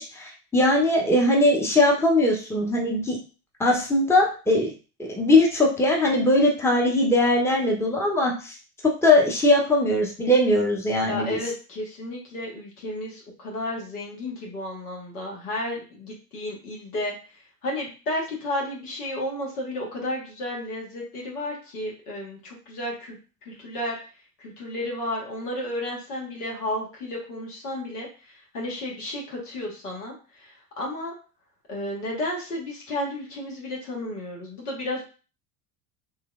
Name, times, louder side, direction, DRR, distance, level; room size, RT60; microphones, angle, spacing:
voice 1, 0.0-3.2 3.6-4.7 5.0-8.5 8.8-11.4, left 1 dB, 5° left, -1 dB, 0.9 m, -20 dB
voice 2, 11.1-17.1 17.6-23.2 23.4-24.0 24.4-31.2 31.7-35.1, left 1 dB, 75° left, -2 dB, 1.5 m, -32 dB
3.2 x 3.1 x 2.4 m, 0.35 s
hypercardioid pair, 75°, 45 cm